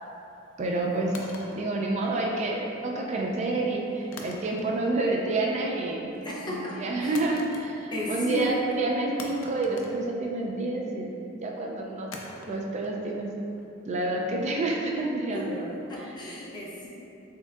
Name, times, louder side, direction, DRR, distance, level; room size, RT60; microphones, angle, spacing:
voice 1, 0.6-1.1 1.5-6.1 6.4-11.1 11.4-12.1 12.4-13.3 13.9-15.7, right 2 dB, 35° right, -1 dB, 0.3 m, -28 dB
sound 1, 1.1-2.5 4.1-5.0 5.3-5.7 7.1-8.1 8.4-8.5 9.2-10.7 12.1-15.1, left 3 dB, 75° left, 0.4 m, -45 dB
voice 2, 6.2-7.2 7.9-8.9 15.3-15.4 15.9-16.9, equal, 20° left, -6 dB, 0.6 m, -33 dB
4.3 x 3.5 x 2.4 m, 2.8 s
head